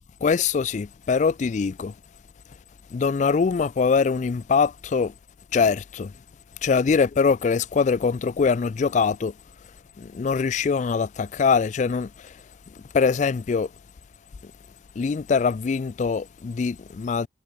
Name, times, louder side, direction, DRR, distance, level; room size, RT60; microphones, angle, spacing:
voice 1, 0.2-1.9 2.9-5.1 5.5-6.1 6.6-9.3 10.0-12.3 12.9-13.7 15.0-17.3, left 5 dB, 40° left, 0.3 m, -23 dB
head